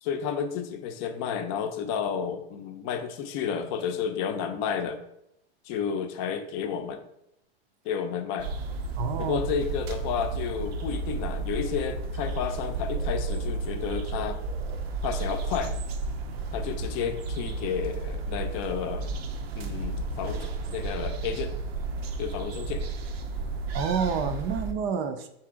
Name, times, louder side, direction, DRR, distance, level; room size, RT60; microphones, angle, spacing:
voice 1, 0.0-5.0 5.7-7.0 7.8-8.5 9.2-14.4 15.0-15.7 16.5-19.1 19.6-21.5 22.2-22.8, left 7 dB, 50° left, 7 dB, 0.6 m, -31 dB
sound 1, 8.4-24.7, right 3 dB, 80° right, 0.6 m, -32 dB
voice 2, 9.0-9.4 23.7-25.3, right 6 dB, 40° right, 8 dB, 0.5 m, -29 dB
3.8 x 2.8 x 3.7 m, 0.79 s
hypercardioid pair, 115°, 30 cm